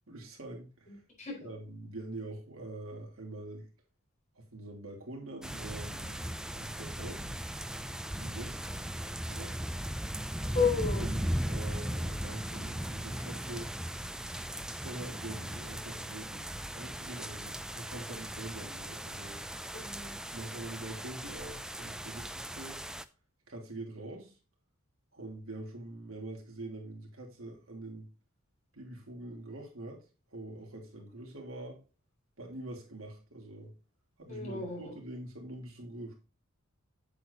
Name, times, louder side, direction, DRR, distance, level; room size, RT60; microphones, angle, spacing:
voice 1, 0.1-1.0 1.4-3.7 4.3-7.4 8.2-8.6 9.3-9.6 10.9-13.7 14.6-19.4 20.1-22.9 23.5-24.4 25.1-28.1 28.7-30.0 30.3-31.8 32.4-33.7 34.2-36.1, right 2 dB, 85° right, 3.0 m, -44 dB
voice 2, 0.9-1.5 10.4-11.1 19.7-20.1 34.3-34.9, left 5 dB, 35° left, 4.6 m, -33 dB
sound 1, 5.4-23.0, equal, 5° right, 0.4 m, -38 dB
8.5 x 8.2 x 2.8 m
head